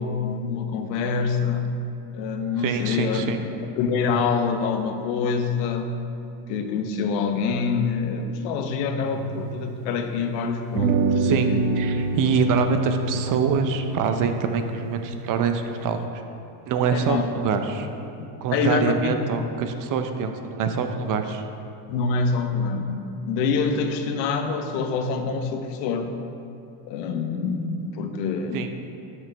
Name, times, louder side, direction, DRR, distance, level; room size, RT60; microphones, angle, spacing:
voice 1, 0.0-1.8 2.1-3.3 3.6-5.9 6.5-11.6 16.8-17.3 18.2-19.2 21.9-26.2 26.9-28.7, left 5 dB, 80° left, 6 dB, 1.0 m, -26 dB
voice 2, 2.6-3.4 11.1-11.5 11.8-16.1 16.7-17.9 18.4-21.4 28.5-28.7, right 5 dB, 40° right, 7 dB, 0.6 m, -25 dB
sound 1, 9.0-10.3 10.8-16.0, right 4 dB, 70° right, 0.8 m, -28 dB
12.0 x 6.4 x 3.3 m, 2.7 s
supercardioid pair, 120°, 50 cm